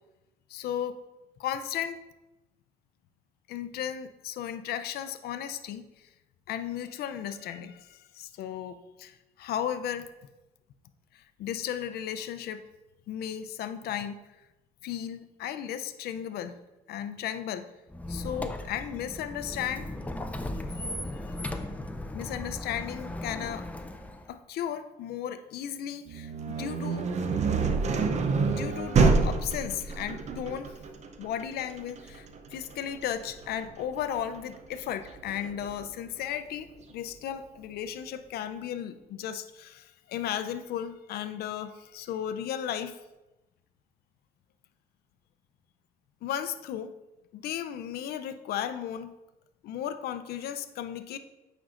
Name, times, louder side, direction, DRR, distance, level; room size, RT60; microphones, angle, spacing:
voice 1, 0.5-1.0 1.4-2.0 3.5-5.9 6.5-10.1 11.1-12.6 13.1-14.2 14.8-16.5 16.9-17.7 18.1-19.9 20.7-21.6 22.1-23.7 24.3-27.1 28.5-30.7 31.2-43.0 46.2-46.9 47.3-49.1 49.6-51.2, left 9 dB, 70° left, 11 dB, 0.5 m, -35 dB
Squeak, 17.9-24.3, left 1 dB, 10° left, 0.5 m, -37 dB
sound 1, 26.1-35.8, right 4 dB, 40° right, 0.6 m, -28 dB
8.8 x 5.3 x 2.5 m, 1.0 s
cardioid pair, 110°, 17 cm